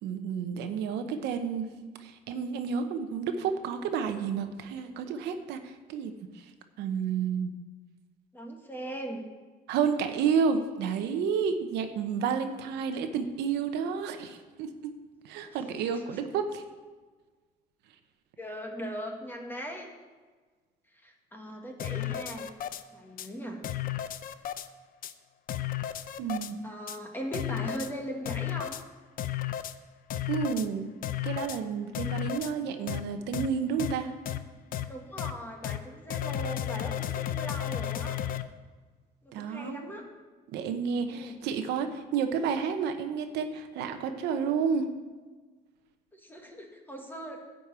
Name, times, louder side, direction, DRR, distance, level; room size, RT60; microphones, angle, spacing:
voice 1, 0.0-1.7 2.0-6.4 6.8-7.5 9.7-14.9 15.2-16.6 26.2-26.6 30.3-30.9 31.2-34.1 39.3-40.0 40.5-44.9, right 6 dB, 85° right, 7 dB, 0.9 m, -30 dB
voice 2, 8.3-9.2 15.9-16.2 18.4-19.9 20.9-22.5 22.9-23.6 26.6-28.8 34.9-38.2 39.2-40.0 41.1-41.4 46.1-47.4, equal, 10° left, 1 dB, 1.5 m, -39 dB
sound 1, 21.8-22.8 23.2-23.3 23.6-24.7 25.0-25.1 25.5-26.5 26.9-27.0 27.3-27.9 28.3-28.8 29.2-29.7 30.1-30.7 31.0-31.6 31.9-32.5 32.9-33.0 33.3-33.5 33.8-33.9 34.3-34.4 34.7-34.8 35.2-35.3 35.6-35.8 36.1-38.4, left 12 dB, 55° left, 0.6 m, -33 dB
10.5 x 5.3 x 8.2 m, 1.4 s
cardioid pair, 110°, 17 cm